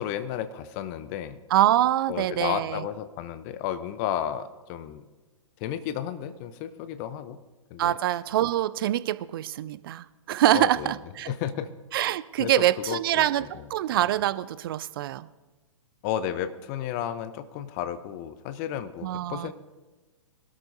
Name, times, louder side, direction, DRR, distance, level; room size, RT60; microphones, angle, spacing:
voice 1, 0.0-1.4 2.1-5.0 5.6-7.4 7.7-8.0 10.5-10.9 11.3-11.7 12.4-13.6 16.0-19.5, left 10 dB, 30° left, 13 dB, 0.7 m, -33 dB
voice 2, 1.5-2.8 7.8-11.3 11.9-15.3 19.0-19.5, right 13 dB, 45° right, 17 dB, 0.4 m, -25 dB
21.5 x 13.0 x 2.7 m, 1.2 s
figure-of-eight pair, 120°, 17 cm